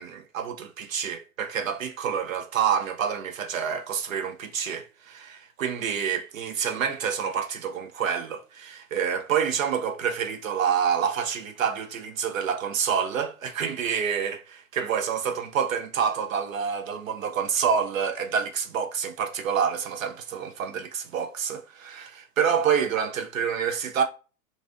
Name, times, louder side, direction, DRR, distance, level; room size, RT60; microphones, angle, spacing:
voice 1, 0.0-24.0, right 7 dB, 60° right, 0.5 m, -27 dB
3.1 x 2.5 x 2.4 m
figure-of-eight pair, 105°, 46 cm